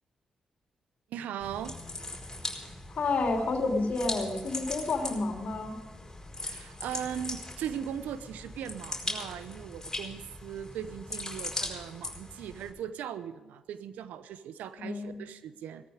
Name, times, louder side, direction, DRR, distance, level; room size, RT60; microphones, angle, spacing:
voice 1, 1.1-1.9 6.4-15.9, right 9 dB, 80° right, 13 dB, 0.8 m, -39 dB
sound 1, 1.4-12.7, left 2 dB, 20° left, 4.7 m, -40 dB
voice 2, 2.9-5.8 14.8-15.2, left 3 dB, 60° left, 3 dB, 2.9 m, -30 dB
17.5 x 14.0 x 5.0 m, 1.3 s
hypercardioid pair, 40°, 3 cm